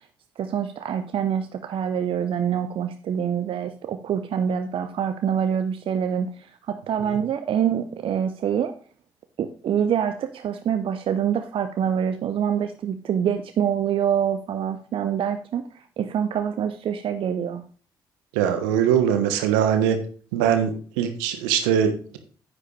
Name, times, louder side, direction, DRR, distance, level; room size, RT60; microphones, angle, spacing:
voice 1, 0.4-8.7 9.4-17.6, right 8 dB, 55° right, 9 dB, 0.7 m, -25 dB
voice 2, 18.3-20.0 20.3-22.2, right 9 dB, 75° right, 8 dB, 1.2 m, -22 dB
9.7 x 8.5 x 3.2 m, 0.40 s
figure-of-eight pair, 40°, 11 cm